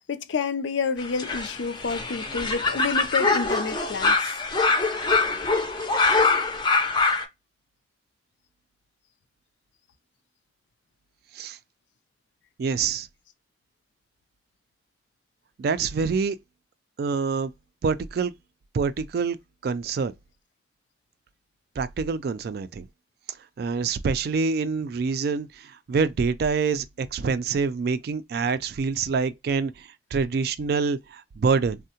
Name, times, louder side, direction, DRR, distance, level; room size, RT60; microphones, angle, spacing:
voice 1, 0.0-4.4, left 5 dB, 80° left, 0.4 m, -29 dB
sound 1, 1.0-7.3, left 3 dB, 25° left, 0.5 m, -24 dB
voice 2, 12.6-13.1 15.6-16.4 17.0-17.5 17.8-18.3 18.7-19.4 19.6-20.1 21.8-22.9 23.6-31.8, right 5 dB, 55° right, 0.3 m, -26 dB
3.5 x 2.1 x 2.7 m
head